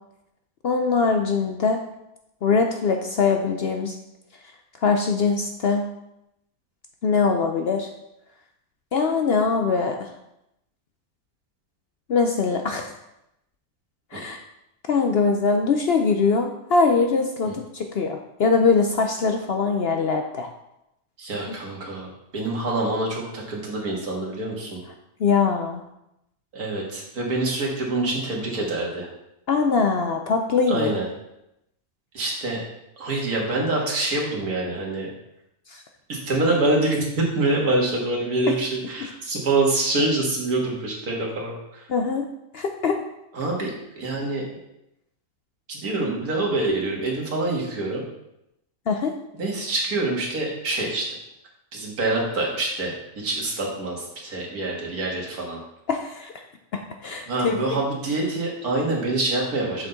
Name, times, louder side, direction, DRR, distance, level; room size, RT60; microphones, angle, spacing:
voice 1, 0.6-1.8 2.4-4.0 4.8-5.9 7.0-7.9 8.9-10.1 12.1-12.9 14.1-14.4 14.9-20.5 25.2-25.8 29.5-30.9 35.7-35.8 38.5-38.6 41.9-42.2 42.5-43.0 48.9-49.1 55.9-56.3 56.7-57.6, left 4 dB, 60° left, 4 dB, 0.6 m, -22 dB
voice 2, 21.2-24.8 26.5-29.1 30.7-31.1 32.1-32.6 33.0-35.1 36.1-41.9 43.3-44.6 45.7-48.0 49.3-51.2 51.7-55.6 57.3-59.9, right 2 dB, 85° right, -2 dB, 2.2 m, -26 dB
7.2 x 5.8 x 4.0 m, 0.85 s
omnidirectional pair, 1.5 m